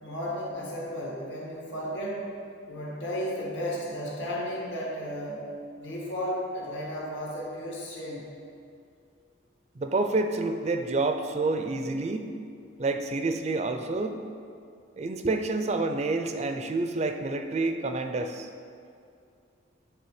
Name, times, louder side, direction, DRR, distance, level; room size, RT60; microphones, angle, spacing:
voice 1, 0.0-2.3 2.7-5.5 5.8-8.3, equal, 70° left, -5 dB, 1.9 m, -34 dB
voice 2, 9.8-12.3 12.8-14.2 15.0-18.5, right 3 dB, 35° right, 6 dB, 0.4 m, -28 dB
9.6 x 3.7 x 4.9 m, 2.4 s
head